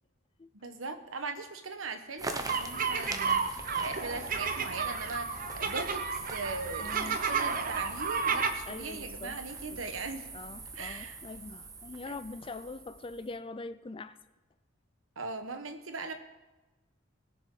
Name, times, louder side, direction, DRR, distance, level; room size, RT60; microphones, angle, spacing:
voice 1, 0.5-10.3 10.7-11.2 12.0-12.2 15.2-16.1, right 3 dB, 80° right, 1.2 m, -40 dB
sound 1, 2.2-13.4, right 3 dB, 20° right, 0.9 m, -43 dB
sound 2, 2.4-8.5, right 5 dB, 45° right, 1.0 m, -32 dB
voice 2, 6.8-7.2 8.7-9.4 9.7-9.8 10.3-14.2, left 3 dB, 25° left, 0.4 m, -43 dB
20.5 x 7.1 x 4.8 m
head